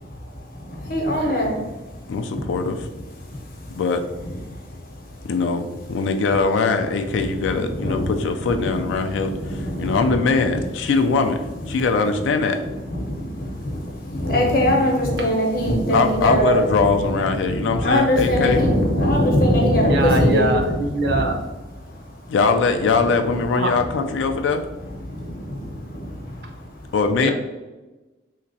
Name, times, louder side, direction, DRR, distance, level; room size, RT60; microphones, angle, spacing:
voice 1, 0.0-3.8 4.2-5.3 5.8-5.9 7.1-8.2 8.6-10.2 10.5-10.6 11.7-11.9 12.6-16.9 17.4-21.4 21.6-22.3 24.8-26.9, equal, 50° left, 0 dB, 0.8 m, -23 dB
voice 2, 2.1-2.9 3.7-4.0 5.2-11.4 11.7-12.6 15.9-18.6 22.3-24.6 26.9-27.3, left 4 dB, 90° left, 7 dB, 0.3 m, -21 dB
voice 3, 19.9-21.4 23.6-23.7 27.2-27.3, right 2 dB, 60° right, 3 dB, 0.5 m, -22 dB
3.3 x 2.9 x 2.6 m, 1.1 s
head